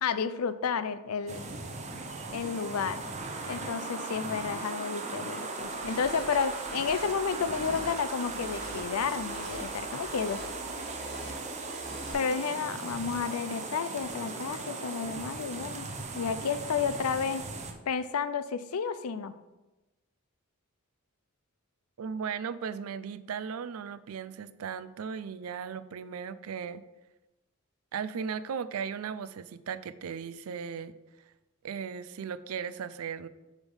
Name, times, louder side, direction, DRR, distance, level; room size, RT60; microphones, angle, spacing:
voice 1, 0.0-1.4 2.3-3.0 3.5-10.4 12.1-15.9 16.1-17.4 17.9-19.3, left 6 dB, 85° left, 13 dB, 0.5 m, -31 dB
sound 1, 1.3-17.7, right 3 dB, 30° right, 0.7 m, -38 dB
sound 2, 5.5-12.1, left 1 dB, 20° left, 2.1 m, -46 dB
voice 2, 22.0-26.8 27.9-30.9 31.6-33.3, right 6 dB, 75° right, 15 dB, 0.4 m, -37 dB
8.1 x 3.5 x 5.4 m, 1.1 s
head